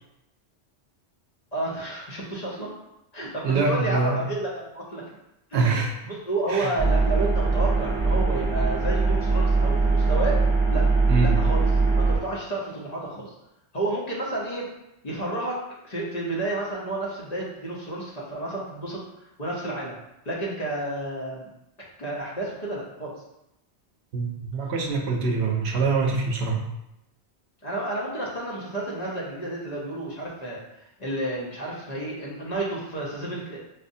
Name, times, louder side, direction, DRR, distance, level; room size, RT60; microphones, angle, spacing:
voice 1, 1.5-2.7 3.1-5.0 5.5-5.8 6.0-10.9 11.2-11.7 12.0-13.3 13.7-14.7 15.0-19.0 19.4-20.0 20.2-21.5 22.0-23.2 27.6-30.6 31.0-33.6, right 2 dB, 45° left, -5 dB, 0.7 m, -31 dB
voice 2, 3.4-4.2 5.5-5.9 6.5-6.7 11.1-11.4 24.1-26.6, right 4 dB, 75° right, 1 dB, 0.8 m, -24 dB
sound 1, 6.8-12.2, right 3 dB, 5° left, 0.8 m, -21 dB
5.0 x 2.0 x 2.6 m, 0.87 s
omnidirectional pair, 1.1 m